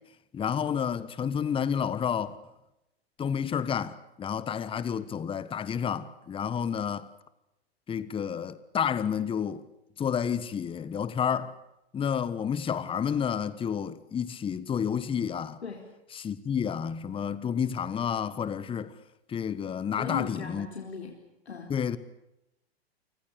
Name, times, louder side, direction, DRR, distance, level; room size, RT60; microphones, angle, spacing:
voice 1, 0.3-2.4 3.2-7.1 7.9-9.6 10.0-11.5 11.9-15.6 16.1-18.9 19.3-20.7 21.7-22.0, left 7 dB, 15° left, 1.3 m, -30 dB
voice 2, 20.0-21.2 21.5-21.8, left 6 dB, 80° left, 4.2 m, -37 dB
29.5 x 25.5 x 6.8 m
figure-of-eight pair, 105°, 32 cm